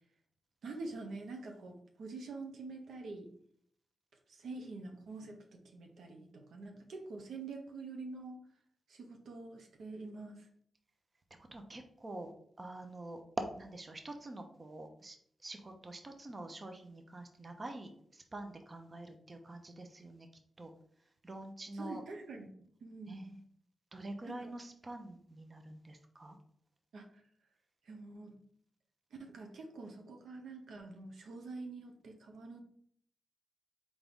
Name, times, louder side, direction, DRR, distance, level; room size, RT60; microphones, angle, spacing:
voice 1, 0.6-3.3 4.3-8.4 8.9-10.5 21.7-23.4 24.2-24.5 26.9-27.2 27.8-28.4 29.1-32.6, right 3 dB, 80° right, 3 dB, 0.7 m, -46 dB
voice 2, 11.5-12.3 12.6-15.2 15.4-20.3 20.6-20.7 21.2-22.0 23.1-23.4 23.9-26.4, right 2 dB, 35° right, 5 dB, 0.7 m, -45 dB
3.9 x 3.5 x 3.6 m, 0.65 s
cardioid pair, 55°, 0 cm